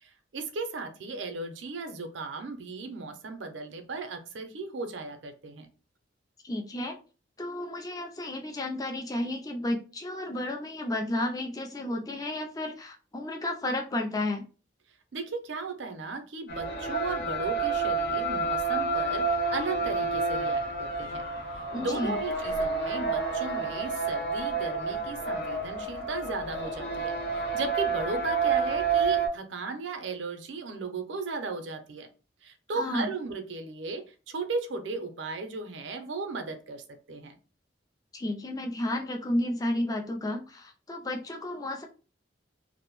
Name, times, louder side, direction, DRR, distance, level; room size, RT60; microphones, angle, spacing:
voice 1, 0.0-5.7 15.1-21.2 21.5-32.1 32.4-37.3, right 3 dB, 85° right, 7 dB, 0.5 m, -36 dB
voice 2, 6.4-7.0 7.4-14.4 21.7-22.2 32.7-33.1 38.1-41.9, left 1 dB, 20° left, 2 dB, 0.4 m, -32 dB
sound 1, 16.5-29.3, right 4 dB, 65° left, 0.7 m, -29 dB
2.5 x 2.0 x 2.9 m, 0.35 s
head